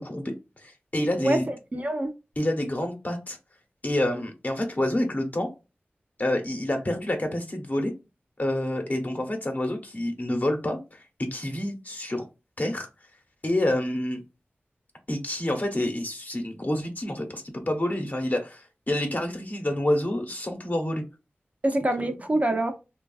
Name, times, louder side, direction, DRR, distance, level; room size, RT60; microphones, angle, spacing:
voice 1, 0.0-1.5 2.4-3.4 3.8-5.5 6.2-7.9 8.4-12.3 12.6-12.9 13.4-14.2 15.1-21.0 21.8-22.1, left 1 dB, 45° left, 0.9 m, -28 dB
voice 2, 1.2-2.1 21.6-22.7, right 1 dB, 35° right, 0.6 m, -25 dB
3.1 x 2.3 x 2.4 m
cardioid pair, 45°, 4 cm